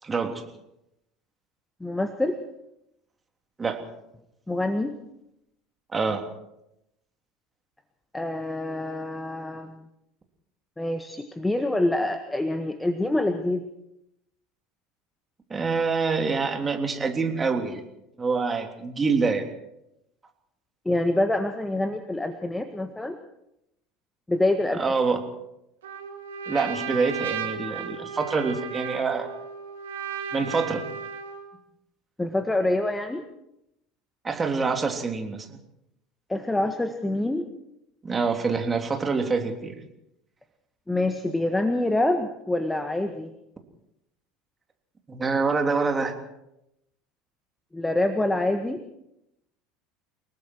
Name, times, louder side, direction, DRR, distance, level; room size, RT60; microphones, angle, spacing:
voice 1, 0.0-0.4 3.6-3.8 5.9-6.2 15.5-17.8 18.2-19.4 24.7-25.2 26.5-29.3 30.3-30.8 34.2-35.6 38.0-39.7 45.1-46.1, right 4 dB, 20° right, 4 dB, 3.4 m, -26 dB
voice 2, 1.8-2.4 4.5-4.9 8.1-9.7 10.8-13.6 20.8-23.2 24.3-24.8 32.2-33.2 36.3-37.5 40.9-43.3 47.7-48.8, left 1 dB, 10° left, 8 dB, 1.6 m, -26 dB
Trumpet, 25.8-31.5, right 6 dB, 70° right, 2.2 m, -35 dB
29.5 x 19.0 x 4.7 m, 0.85 s
figure-of-eight pair, 70°, 0 cm